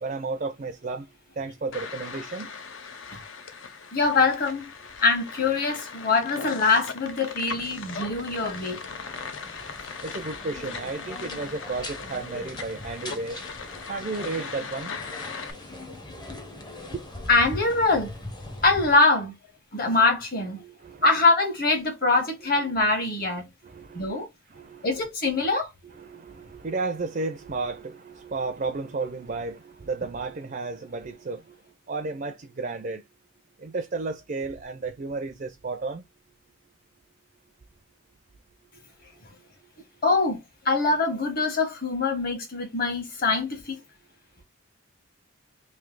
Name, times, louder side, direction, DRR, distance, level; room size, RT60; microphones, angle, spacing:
voice 1, 0.0-1.1 1.4-2.5 10.0-13.4 13.9-14.9 20.6-21.0 23.6-25.1 25.8-31.6 31.9-33.0 33.6-36.0, right 3 dB, 40° right, 0.4 m, -33 dB
sound 1, 1.7-15.5, left 5 dB, 60° left, 0.6 m, -39 dB
voice 2, 3.9-4.7 5.0-8.8 9.3-9.4 17.3-18.1 18.6-19.4 19.7-20.6 21.0-23.4 23.9-24.3 24.8-25.7 40.0-43.8, left 3 dB, 45° left, 1.4 m, -23 dB
sound 2, 7.5-19.0, left 1 dB, 20° left, 0.6 m, -41 dB
3.2 x 2.7 x 3.6 m
head